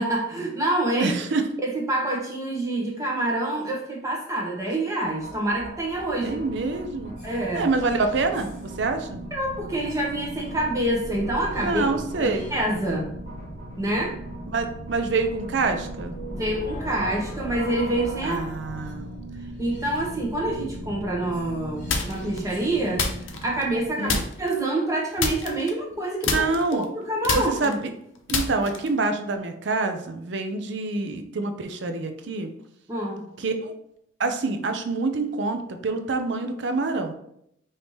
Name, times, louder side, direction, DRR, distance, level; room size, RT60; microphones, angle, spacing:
voice 1, 0.0-1.1 1.7-6.4 7.2-7.7 9.3-11.8 12.2-13.1 13.8-14.2 16.3-18.4 19.6-23.0 23.4-26.4 26.8-27.7 32.9-33.2, right 1 dB, 15° right, -2 dB, 0.9 m, -27 dB
voice 2, 1.0-1.5 6.2-7.1 7.6-9.2 11.6-12.5 14.5-16.2 18.2-19.1 24.0-24.2 26.3-26.9 27.3-27.9 28.3-32.5 33.4-33.7 34.2-37.1, right 3 dB, 60° right, 7 dB, 0.5 m, -26 dB
sound 1, 5.0-23.9, right 1 dB, 40° left, 1.1 m, -37 dB
sound 2, 21.9-22.4 23.0-23.8 24.1-24.6 25.2-26.0 26.2-29.0, left 4 dB, 75° left, 0.6 m, -27 dB
5.2 x 2.7 x 3.1 m, 0.73 s
head